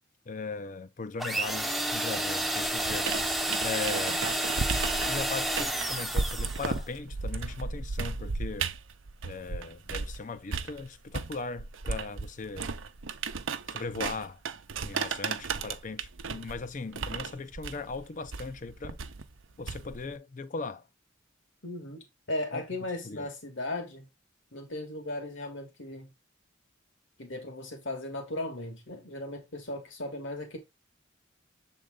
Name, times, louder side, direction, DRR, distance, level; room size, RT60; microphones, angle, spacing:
voice 1, 0.3-4.2 5.1-8.7 9.2-12.7 13.7-14.4 14.8-19.0 19.6-20.8 22.5-22.6 23.0-23.3, left 4 dB, 40° left, 0.5 m, -38 dB
sound 1, 1.2-6.8, right 1 dB, ahead, 0.6 m, -30 dB
sound 2, 2.8-10.2 10.5-20.1, right 4 dB, 85° right, 0.7 m, -35 dB
voice 2, 21.6-24.1 24.5-26.1 27.2-30.6, left 1 dB, 70° left, 2.0 m, -37 dB
7.4 x 3.8 x 3.7 m
head